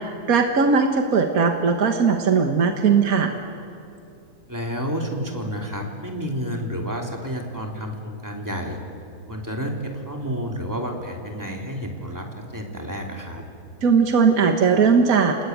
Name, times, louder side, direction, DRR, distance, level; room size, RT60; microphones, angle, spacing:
voice 1, 0.0-3.3 13.8-15.4, right 5 dB, 70° right, 4 dB, 1.9 m, -19 dB
voice 2, 4.5-8.8 9.3-13.4, equal, 10° right, 1 dB, 3.2 m, -30 dB
29.0 x 20.5 x 9.5 m, 2.6 s
omnidirectional pair, 1.6 m